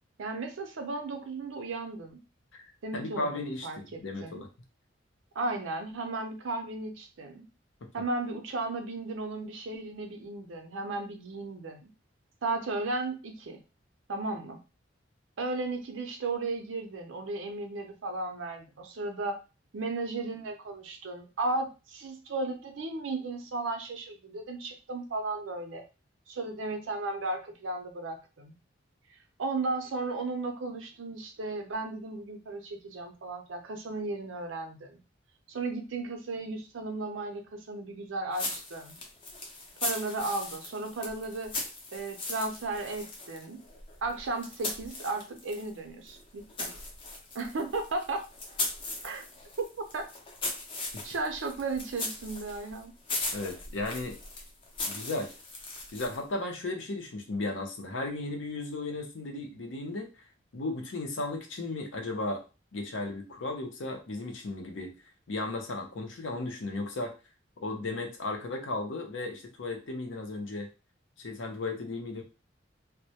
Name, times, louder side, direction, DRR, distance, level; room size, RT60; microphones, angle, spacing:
voice 1, 0.2-2.2 2.8-4.4 5.3-7.5 7.9-11.8 12.4-13.6 14.1-14.6 15.4-19.4 19.7-25.8 26.3-28.5 29.1-35.0 35.5-39.0 39.8-41.5 41.9-43.6 44.0-46.7 47.3-48.2 49.0-49.2 49.6-49.7 49.9-50.1 51.0-52.9, right 3 dB, 90° right, 5 dB, 0.5 m, -35 dB
voice 2, 2.9-4.5 53.3-54.2 54.9-55.3 55.9-60.1 60.5-62.4 62.7-64.9 65.3-67.1 67.6-70.7 71.2-72.2, left 2 dB, 80° left, 3 dB, 0.6 m, -35 dB
sound 1, 38.3-45.7 46.1-56.3, left 2 dB, 30° left, 0.5 m, -39 dB
2.2 x 2.1 x 2.8 m, 0.30 s
head